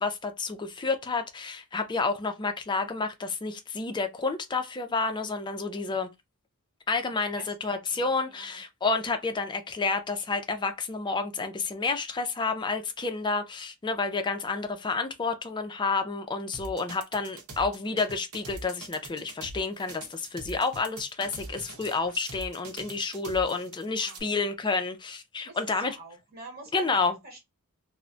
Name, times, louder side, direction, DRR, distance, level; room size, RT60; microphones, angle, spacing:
voice 1, 0.0-6.1 6.9-26.0 26.7-27.2, left 4 dB, 20° left, 0.4 m, -30 dB
voice 2, 7.4-8.6 23.9-24.2 25.5-25.6 25.8-27.4, right 2 dB, 45° right, 1.2 m, -46 dB
sound 1, 16.5-24.2, right 2 dB, 80° right, 0.8 m, -43 dB
2.2 x 2.1 x 3.7 m
head